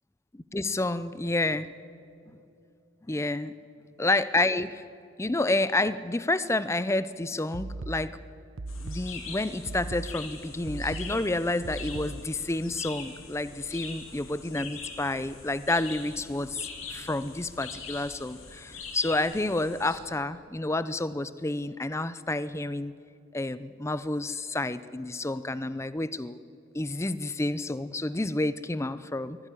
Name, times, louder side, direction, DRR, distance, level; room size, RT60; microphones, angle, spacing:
voice 1, 0.3-1.7 3.1-3.5 4.0-4.8 5.2-8.1 8.8-22.9 23.3-26.4 26.7-29.4, left 2 dB, 15° left, 15 dB, 0.5 m, -29 dB
sound 1, 7.5-12.5, right 2 dB, 70° right, 0.8 m, -39 dB
sound 2, 8.7-20.0, left 5 dB, 75° left, 3.2 m, -43 dB
24.0 x 17.0 x 9.9 m, 2.7 s
head